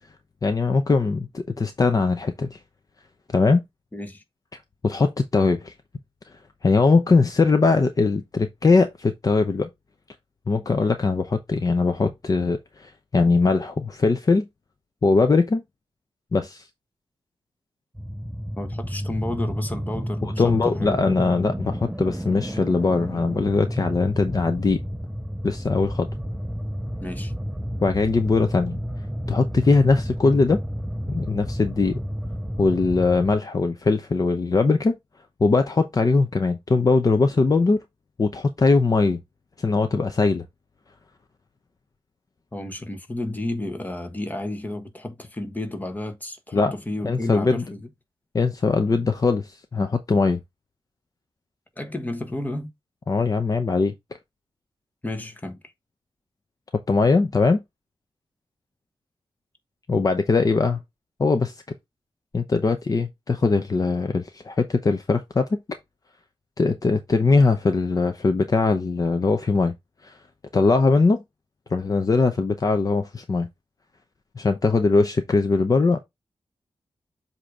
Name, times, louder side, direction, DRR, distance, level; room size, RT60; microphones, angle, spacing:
voice 1, 0.4-2.6 3.3-3.6 4.8-5.7 6.6-9.7 10.5-14.5 15.0-15.6 16.3-16.6 20.2-24.8 25.4-26.1 27.8-28.8 29.3-30.6 31.1-32.0 32.6-35.0 35.4-37.8 38.2-39.2 39.6-40.4 46.5-46.7 47.0-47.6 48.3-50.4 53.1-53.9 56.9-57.6 59.9-60.8 61.2-61.6 62.3-65.6 66.6-69.7 70.0-70.1 70.5-71.2 71.7-73.5 74.4-76.0, left 3 dB, 40° left, 0.8 m, -21 dB
voice 2, 3.9-4.2 18.6-21.1 27.0-27.3 42.5-47.9 51.8-52.7 55.0-55.6, left 1 dB, 15° left, 1.3 m, -32 dB
sound 1, 17.9-33.4, equal, 5° right, 0.5 m, -31 dB
7.7 x 3.0 x 4.9 m
wide cardioid pair, 100°, 10 cm